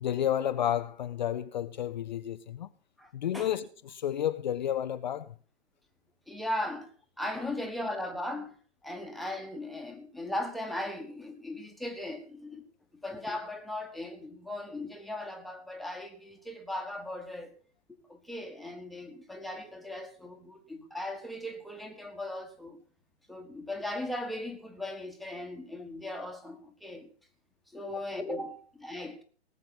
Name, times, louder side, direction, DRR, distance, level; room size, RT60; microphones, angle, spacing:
voice 1, 0.0-2.7 3.1-5.4 27.8-28.0, left 10 dB, 45° left, 0.7 m, -31 dB
voice 2, 3.0-3.5 6.3-6.9 7.2-8.5 8.8-12.7 13.0-17.5 18.1-22.8 23.3-27.1 27.7-29.2, left 1 dB, ahead, 1.4 m, -38 dB
18.5 x 8.0 x 6.0 m
figure-of-eight pair, 120°, 33 cm